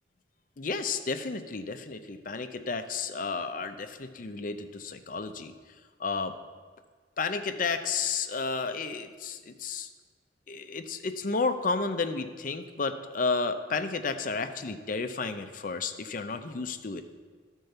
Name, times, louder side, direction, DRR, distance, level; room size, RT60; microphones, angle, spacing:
voice 1, 0.6-5.5 6.0-6.3 7.2-9.9 10.5-17.0, left 4 dB, 45° left, 8 dB, 0.6 m, -32 dB
12.0 x 4.5 x 6.6 m, 1.5 s
head